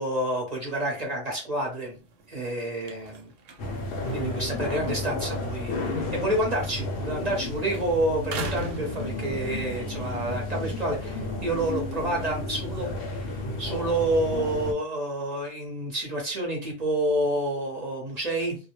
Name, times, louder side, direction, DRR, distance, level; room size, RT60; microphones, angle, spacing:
voice 1, 0.0-2.0 2.3-3.3 4.1-18.6, right 1 dB, 40° right, -1 dB, 0.8 m, -29 dB
sound 1, 1.8-7.4 7.7-9.7 10.2-13.3, right 3 dB, 85° right, 1.0 m, -43 dB
sound 2, 3.6-14.7, left 2 dB, 65° left, 0.8 m, -32 dB
2.3 x 2.0 x 2.9 m, 0.34 s
omnidirectional pair, 1.3 m